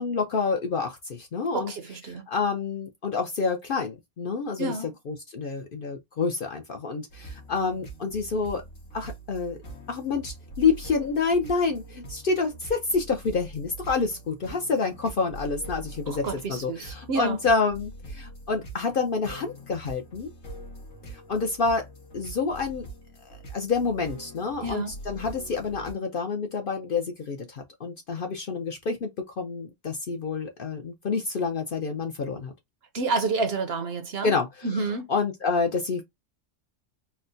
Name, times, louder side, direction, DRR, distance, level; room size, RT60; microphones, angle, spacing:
voice 1, 0.0-1.7 2.1-4.7 5.1-8.6 8.9-9.6 9.9-20.3 21.1-21.9 22.1-22.9 23.2-32.5 34.2-36.0, left 4 dB, 55° left, 0.6 m, -28 dB
voice 2, 1.5-2.3 4.6-4.9 16.1-17.4 24.6-24.9 32.9-34.3 34.6-35.1, right 3 dB, 60° right, 0.8 m, -29 dB
sound 1, 7.1-25.9, right 2 dB, 75° left, 1.7 m, -43 dB
4.3 x 2.0 x 2.6 m
omnidirectional pair, 1.4 m